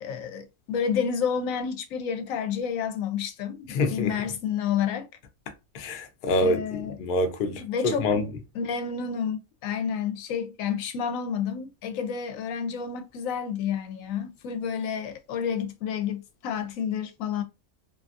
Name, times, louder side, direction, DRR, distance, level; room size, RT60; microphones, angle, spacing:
voice 1, 0.0-5.1 6.4-6.9 7.6-8.3 8.6-17.4, left 7 dB, 80° left, 1.0 m, -30 dB
voice 2, 3.7-4.2 5.7-8.3, left 2 dB, 55° left, 0.5 m, -26 dB
2.6 x 2.4 x 2.4 m
omnidirectional pair, 1.4 m